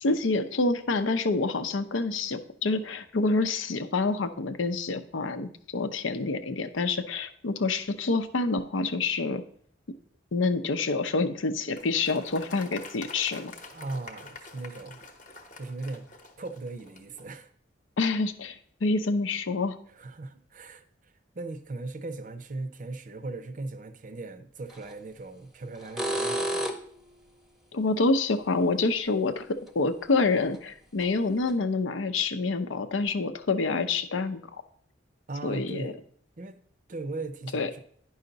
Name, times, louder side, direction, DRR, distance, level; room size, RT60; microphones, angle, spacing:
voice 1, 0.0-9.4 10.3-13.5 18.0-19.8 27.7-34.4 35.4-35.9 37.5-37.7, left 3 dB, 90° left, 10 dB, 0.6 m, -27 dB
Applause, 11.7-17.3, left 3 dB, 40° left, 0.9 m, -46 dB
voice 2, 13.7-15.0 15.6-16.1 16.4-17.5 19.9-26.7 35.3-36.0 36.4-36.6 36.9-37.8, right 2 dB, 40° right, 10 dB, 0.5 m, -38 dB
sound 1, 24.7-24.9 25.8-27.0 29.7-29.8 30.5-30.6 31.0-31.1 31.5-31.6, right 1 dB, ahead, 0.7 m, -30 dB
9.6 x 5.6 x 3.9 m, 0.62 s
head